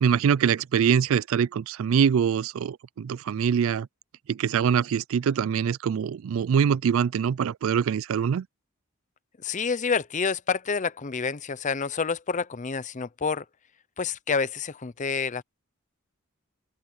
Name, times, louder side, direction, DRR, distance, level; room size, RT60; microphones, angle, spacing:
voice 1, 0.0-3.9 4.3-8.5, right 7 dB, 70° right, 0.3 m, -24 dB
voice 2, 9.4-13.4 14.0-15.4, left 5 dB, 35° left, 0.6 m, -28 dB
open air
head